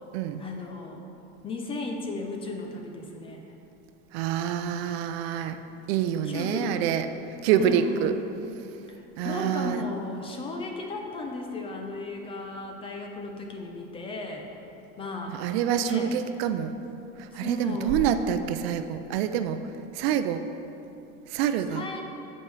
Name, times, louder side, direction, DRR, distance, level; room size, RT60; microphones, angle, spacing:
voice 1, 0.4-1.0 1.4-3.4 6.2-6.8 7.6-8.2 8.9-14.5 15.0-15.4 15.8-16.1 17.3-18.0 21.7-22.0, left 3 dB, 15° left, 2 dB, 0.5 m, -35 dB
voice 2, 4.1-5.6 5.9-7.1 7.4-8.1 9.2-9.8 15.3-16.8 17.2-19.6 19.9-20.4 21.3-21.8, right 9 dB, 70° right, 10 dB, 0.5 m, -26 dB
9.9 x 6.4 x 3.3 m, 2.9 s
cardioid pair, 160°, 32 cm